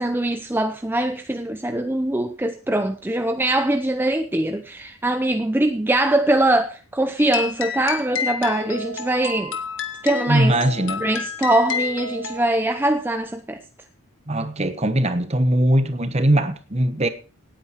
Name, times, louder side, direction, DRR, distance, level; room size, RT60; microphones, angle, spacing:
voice 1, 0.0-9.6 10.0-10.6 11.0-13.6, right 1 dB, 10° right, 0.6 m, -22 dB
sound 1, 7.2-12.5, left 6 dB, 60° left, 1.7 m, -30 dB
voice 2, 10.3-11.0 14.3-17.1, right 1 dB, 30° right, 1.2 m, -20 dB
18.0 x 9.0 x 4.5 m
head